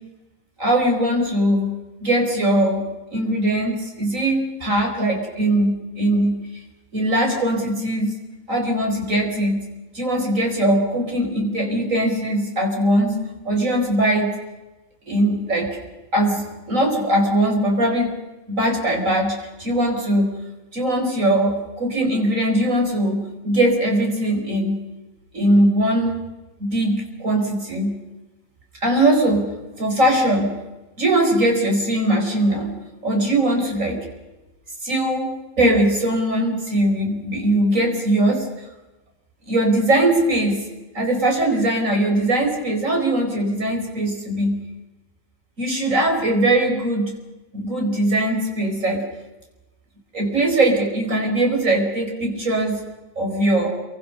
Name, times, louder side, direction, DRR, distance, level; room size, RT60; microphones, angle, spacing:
voice 1, 0.6-2.8 3.1-6.5 6.9-8.2 8.5-9.6 9.9-13.2 13.4-14.4 15.1-15.8 16.1-18.1 18.5-20.3 20.7-24.8 25.3-26.2 26.6-28.0 28.8-30.6 31.0-34.0 34.8-38.5 39.5-40.6 40.9-44.6 45.6-47.1 47.5-49.1 50.1-52.8 53.2-53.7, right 1 dB, 80° right, 2 dB, 5.1 m, -20 dB
28.0 x 23.0 x 6.7 m, 1.1 s
omnidirectional pair, 1.3 m